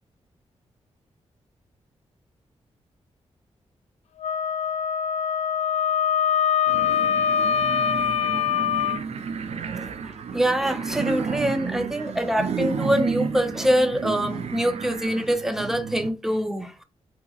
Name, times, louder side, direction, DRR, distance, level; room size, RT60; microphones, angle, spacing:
Wind instrument woodwind instrument, 4.2-9.0, left 8 dB, 75° left, 0.4 m, -23 dB
sound 1, 6.7-16.1, right 5 dB, 65° right, 0.5 m, -31 dB
voice 1, 9.7-16.8, equal, 5° right, 0.6 m, -25 dB
4.0 x 2.9 x 2.3 m
cardioid pair, 85°, 12 cm